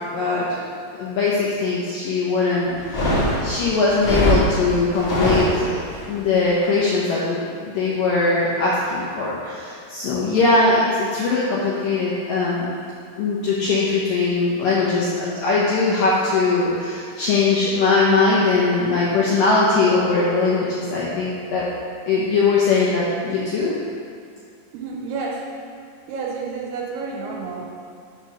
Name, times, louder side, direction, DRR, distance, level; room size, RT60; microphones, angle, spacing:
voice 1, 0.1-0.6 1.0-5.8 6.1-12.7 13.2-21.7 22.1-23.7, left 3 dB, 80° left, -7 dB, 2.0 m, -20 dB
sound 1, 2.8-6.0, equal, 40° left, 2.0 m, -21 dB
voice 2, 24.7-25.5 26.1-27.6, right 4 dB, 80° right, -2 dB, 2.8 m, -30 dB
6.6 x 4.0 x 6.2 m, 2.3 s
omnidirectional pair, 4.9 m